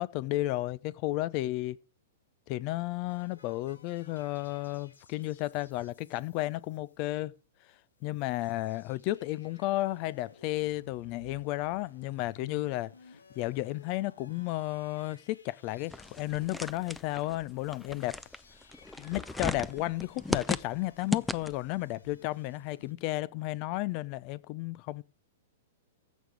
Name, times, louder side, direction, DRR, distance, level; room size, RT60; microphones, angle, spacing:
voice 1, 0.0-1.8 2.5-7.3 8.0-12.9 13.4-18.2 19.0-25.0, left 17 dB, 45° left, 0.6 m, -33 dB
sound 1, 3.1-7.5 7.7-7.8 8.0-22.9, left 3 dB, 85° left, 1.5 m, -58 dB
sound 2, 15.9-21.7, left 2 dB, 5° left, 0.6 m, -36 dB
15.5 x 6.3 x 6.4 m
hypercardioid pair, 115°, 0 cm